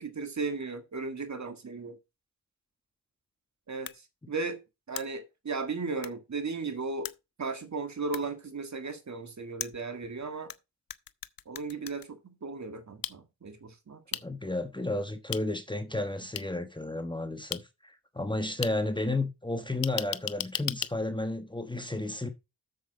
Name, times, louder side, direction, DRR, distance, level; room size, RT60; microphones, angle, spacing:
voice 1, 0.0-2.0 3.7-3.9 4.3-4.6 4.9-7.1 7.4-10.5 11.5-14.2, right 4 dB, 45° right, 1.9 m, -36 dB
sound 1, 3.9-4.0 5.0-5.1 6.0-6.1 7.0-7.1 8.1-8.2 9.6-10.6 10.9-12.1 13.0-13.1 14.1-14.2 15.3-15.4 16.3-16.4 17.5-17.6 18.6-18.7 19.8-20.9, left 10 dB, 60° left, 0.6 m, -35 dB
voice 2, 14.2-22.3, left 2 dB, 10° left, 1.2 m, -32 dB
7.9 x 7.3 x 4.0 m
cardioid pair, 75°, 39 cm